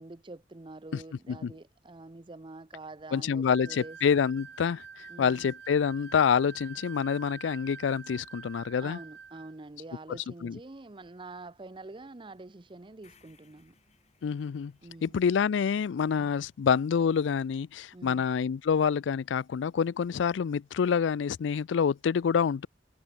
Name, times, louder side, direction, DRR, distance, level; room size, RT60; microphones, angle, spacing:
voice 1, 0.0-4.0 5.1-5.5 8.8-13.7 14.8-15.2 16.1-16.3 17.9-18.2, right 2 dB, 25° right, 0.6 m, -46 dB
voice 2, 3.1-9.0 10.1-10.6 14.2-14.7 15.0-22.7, left 6 dB, 85° left, 0.4 m, -27 dB
sound 1, 3.5-9.6, right 6 dB, 65° right, 1.2 m, -47 dB
sound 2, 13.0-17.2, left 5 dB, 35° left, 7.4 m, -67 dB
head